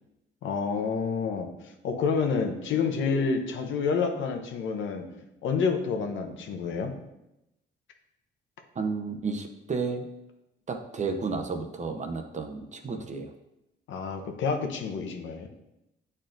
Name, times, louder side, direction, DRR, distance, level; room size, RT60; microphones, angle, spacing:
voice 1, 0.4-1.5 1.8-5.0 5.4-6.9 13.9-15.5, left 5 dB, 75° left, 5 dB, 0.9 m, -28 dB
voice 2, 8.8-10.1 10.7-13.3, right 4 dB, 35° right, 5 dB, 0.8 m, -32 dB
8.8 x 4.3 x 2.6 m, 0.90 s
cardioid pair, 90°, 20 cm